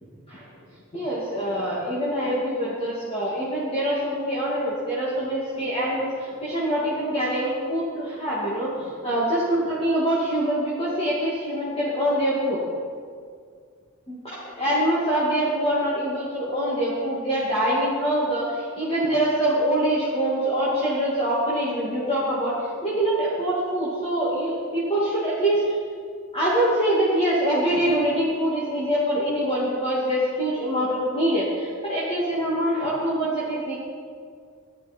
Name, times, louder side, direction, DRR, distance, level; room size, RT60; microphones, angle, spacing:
voice 1, 0.9-12.6 14.1-22.6 22.8-25.8 26.3-33.8, right 1 dB, 25° left, -8 dB, 2.6 m, -24 dB
15.5 x 12.5 x 4.5 m, 2.1 s
head